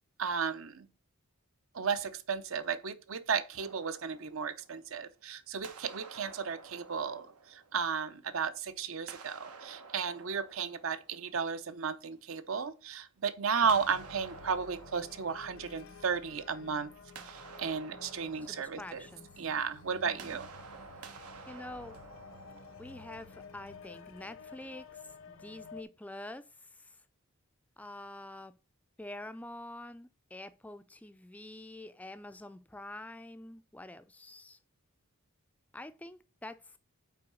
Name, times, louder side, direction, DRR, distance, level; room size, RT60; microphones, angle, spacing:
voice 1, 0.2-0.9 1.7-16.9 17.3-19.0 19.4-20.5, right 6 dB, 60° right, 0.7 m, -34 dB
sound 1, 3.6-5.2 5.6-8.4 9.0-11.9 13.7-16.5 16.8-23.5, right 5 dB, 90° right, 1.1 m, -52 dB
sound 2, 13.6-25.8, left 5 dB, 60° left, 0.7 m, -52 dB
voice 2, 18.4-19.3 19.9-20.4 21.0-22.0 22.8-27.0 27.8-28.5 29.0-34.6 35.7-36.8, left 1 dB, 5° left, 0.3 m, -47 dB
5.7 x 4.6 x 6.2 m
head